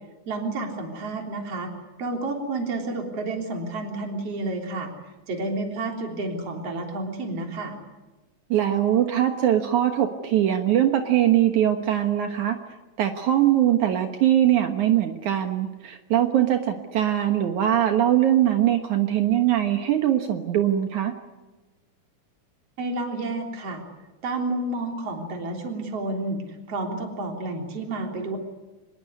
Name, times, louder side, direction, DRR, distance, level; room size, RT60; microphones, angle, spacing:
voice 1, 0.3-1.7 2.0-4.9 5.3-7.8 22.8-23.8 24.2-28.4, right 2 dB, 50° right, 2 dB, 4.5 m, -30 dB
voice 2, 8.5-12.6 13.0-21.1, right 11 dB, 70° right, 5 dB, 2.7 m, -21 dB
26.0 x 21.5 x 9.6 m, 1.2 s
omnidirectional pair, 3.7 m